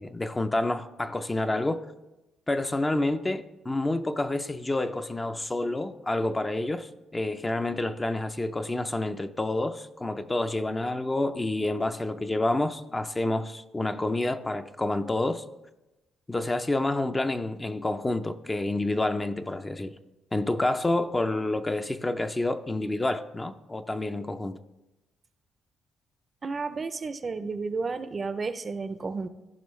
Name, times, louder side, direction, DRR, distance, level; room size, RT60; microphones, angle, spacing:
voice 1, 0.0-1.9 2.5-15.4 16.3-19.9 20.3-24.6, left 2 dB, 20° left, 0.4 m, -28 dB
voice 2, 26.4-29.3, right 4 dB, 35° right, 0.5 m, -32 dB
14.5 x 5.3 x 3.2 m
cardioid pair, 90°, 0 cm